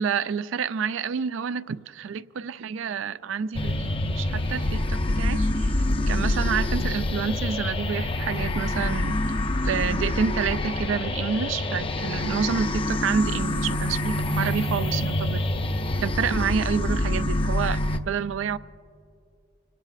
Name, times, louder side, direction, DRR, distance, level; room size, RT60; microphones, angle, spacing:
voice 1, 0.0-5.7 6.1-9.1 9.6-15.4 16.0-18.6, right 6 dB, 80° right, 0.4 m, -28 dB
sound 1, 3.5-18.0, left 1 dB, 30° left, 0.5 m, -26 dB
26.0 x 18.0 x 2.5 m
head